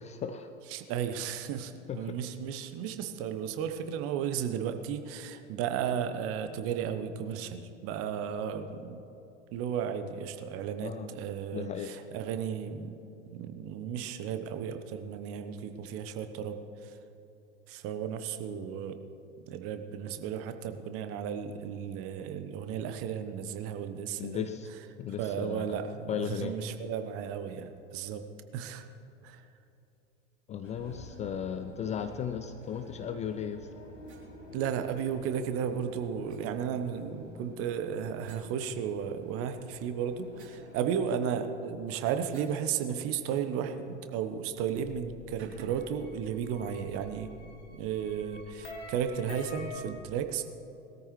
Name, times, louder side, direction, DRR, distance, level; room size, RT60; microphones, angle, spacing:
voice 1, 0.0-0.5 1.9-2.2 10.8-11.1 11.5-11.9 24.2-24.7 25.0-25.8 26.1-26.5 30.5-33.7, left 8 dB, 20° left, 8 dB, 0.4 m, -36 dB
voice 2, 0.7-9.0 9.5-13.0 13.3-17.0 17.7-19.0 19.5-24.5 25.2-28.2 28.5-28.9 29.2-29.5 34.5-47.3 47.7-50.4, right 8 dB, 40° right, 9 dB, 1.0 m, -34 dB
sound 1, 30.6-41.0, left 1 dB, 90° left, 1.4 m, -50 dB
sound 2, 34.0-34.3 36.3-36.4 38.2-39.3 39.7-42.6 42.9-43.0 43.3-44.0 44.3-44.5 45.4-45.9, right 6 dB, 65° right, 3.5 m, -54 dB
sound 3, 44.7-49.8, left 3 dB, 50° left, 2.7 m, -47 dB
20.0 x 13.5 x 3.2 m, 2.9 s
figure-of-eight pair, 80°, 36 cm